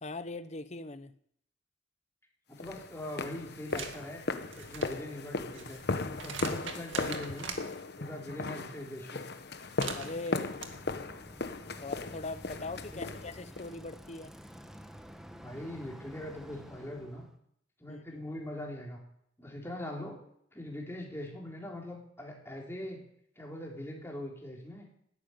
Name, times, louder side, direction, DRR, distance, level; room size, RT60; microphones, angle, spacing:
voice 1, 0.0-1.1 10.0-10.5 11.8-14.3 17.9-18.2, left 3 dB, 35° left, 0.8 m, -41 dB
sound 1, 2.6-13.7, left 3 dB, 55° left, 1.1 m, -37 dB
voice 2, 2.6-4.2 4.5-5.8 6.2-7.6 8.0-9.2 12.9-13.1 15.3-17.3 17.8-19.0 19.4-20.2 20.5-23.0 23.4-24.9, left 1 dB, 15° left, 3.8 m, -42 dB
sound 2, 3.7-4.0 4.4-7.6 9.5-10.7, right 6 dB, 80° right, 2.0 m, -42 dB
Bicycle, 9.8-17.3, equal, 5° right, 1.0 m, -50 dB
13.0 x 10.5 x 9.3 m
head